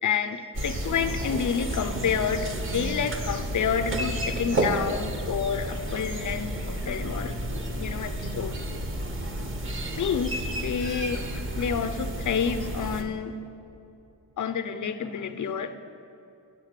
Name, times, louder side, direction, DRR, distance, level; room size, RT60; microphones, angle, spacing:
voice 1, 0.0-7.4 7.8-8.5 10.0-11.2 11.6-13.3 14.4-15.8, left 7 dB, 50° left, 10 dB, 0.5 m, -29 dB
sound 1, 0.5-13.0, right 1 dB, 30° right, 0.7 m, -31 dB
8.1 x 4.0 x 6.6 m, 2.7 s
cardioid pair, 65°, 41 cm